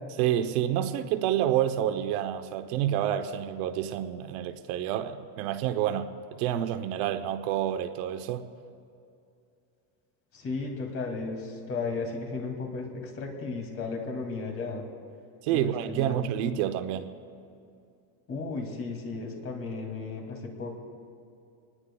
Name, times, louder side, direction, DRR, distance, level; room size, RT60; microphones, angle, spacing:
voice 1, 0.2-8.5 15.4-17.1, right 11 dB, 70° right, 9 dB, 0.9 m, -28 dB
voice 2, 10.3-14.9 15.5-16.2 18.3-20.8, left 4 dB, 30° left, 1 dB, 2.5 m, -34 dB
26.0 x 20.0 x 2.3 m, 2.5 s
cardioid pair, 155°, 45 cm